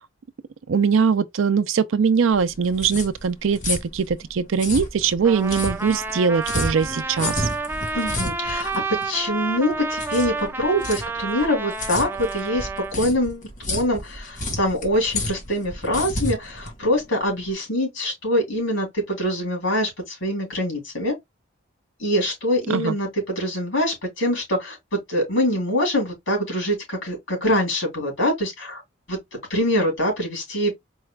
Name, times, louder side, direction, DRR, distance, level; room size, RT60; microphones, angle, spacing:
voice 1, 0.7-7.5 22.7-22.9, right 6 dB, 85° right, 0.5 m, -21 dB
sound 1, 2.3-17.5, left 1 dB, 40° left, 1.1 m, -31 dB
Trumpet, 5.2-13.0, right 3 dB, 10° right, 0.3 m, -30 dB
voice 2, 7.9-8.7 9.0-21.1 22.0-28.8 29.1-29.2 29.5-30.7, equal, 85° left, 3.2 m, -24 dB
4.6 x 2.3 x 3.2 m
head